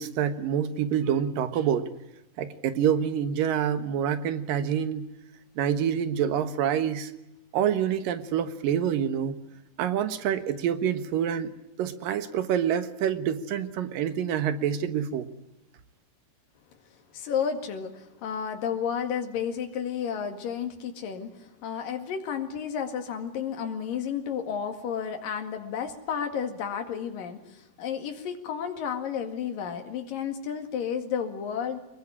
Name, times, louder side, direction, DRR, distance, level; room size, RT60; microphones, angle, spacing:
voice 1, 0.0-1.9 2.4-5.1 5.6-7.1 7.5-9.4 9.8-11.5 11.8-15.3, right 9 dB, 90° right, 11 dB, 3.1 m, -27 dB
voice 2, 17.1-31.8, left 7 dB, 90° left, 5 dB, 3.8 m, -32 dB
25.5 x 21.5 x 10.0 m, 0.90 s
omnidirectional pair, 3.8 m